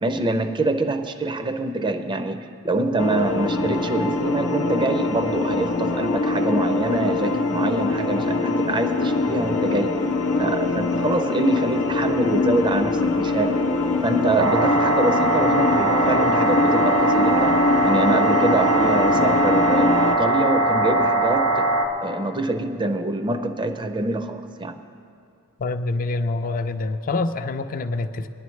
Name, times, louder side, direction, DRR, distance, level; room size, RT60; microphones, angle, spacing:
voice 1, 0.0-10.0 10.4-13.6 14.0-21.7 22.0-24.8, right 2 dB, 20° right, 8 dB, 0.4 m, -25 dB
sound 1, 3.0-20.2, left 3 dB, 75° left, 0.7 m, -23 dB
sound 2, 14.4-21.9, right 2 dB, 85° right, 1.1 m, -21 dB
voice 2, 25.6-28.3, left 3 dB, 40° left, 8 dB, 0.4 m, -26 dB
20.0 x 10.5 x 3.2 m, 2.5 s
head